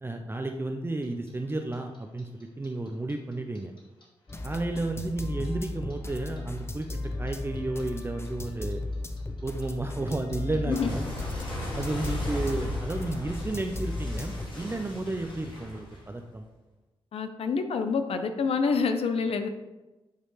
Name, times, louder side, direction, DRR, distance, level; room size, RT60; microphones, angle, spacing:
voice 1, 0.0-3.7 4.4-6.9 7.2-8.8 9.4-11.0 11.8-16.5, right 2 dB, 25° right, 4 dB, 0.5 m, -32 dB
Clock, 1.0-4.0 4.3-7.3 7.6-16.4, left 1 dB, 50° left, 2.1 m, -37 dB
sound 1, 4.3-14.5, left 2 dB, 25° left, 0.6 m, -35 dB
voice 2, 17.1-19.5, left 5 dB, 75° left, 7 dB, 0.6 m, -27 dB
8.9 x 3.3 x 3.2 m, 1.1 s
cardioid pair, 55°, 10 cm